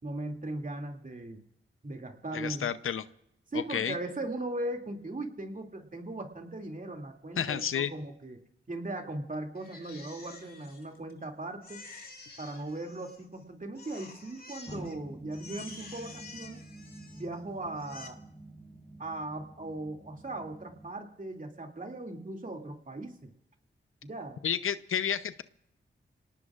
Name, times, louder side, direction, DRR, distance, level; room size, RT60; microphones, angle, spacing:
voice 1, 0.0-1.4 1.8-2.7 3.5-8.4 8.7-11.8 12.4-16.6 17.1-18.2 19.0-23.3 24.0-24.4, right 2 dB, 40° right, 3 dB, 2.6 m, -38 dB
voice 2, 2.3-3.0 3.5-4.0 7.4-7.9 24.4-25.4, left 8 dB, 80° left, 13 dB, 0.7 m, -31 dB
Crying sobbing, 9.6-11.2 11.6-13.4 13.8-15.0 15.3-17.4 17.7-18.1, left 3 dB, 45° left, 2.5 m, -49 dB
sound 1, 14.7-20.9, right 1 dB, 25° left, 3.6 m, -49 dB
26.5 x 18.5 x 2.5 m, 0.79 s
cardioid pair, 55°, 21 cm